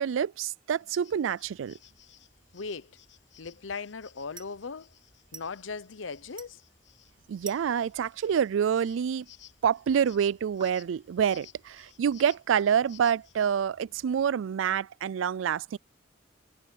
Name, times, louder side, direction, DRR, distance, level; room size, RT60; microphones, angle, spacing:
voice 1, 0.0-1.8 7.3-9.3 9.6-15.8, right 8 dB, 80° right, 0.3 m, -27 dB
sound 1, 0.7-13.6, left 12 dB, 70° left, 7.7 m, -58 dB
sound 2, 1.4-14.2, right 5 dB, 25° right, 5.8 m, -55 dB
voice 2, 2.5-3.0 3.4-4.9 5.3-6.6, left 4 dB, 85° left, 0.8 m, -38 dB
head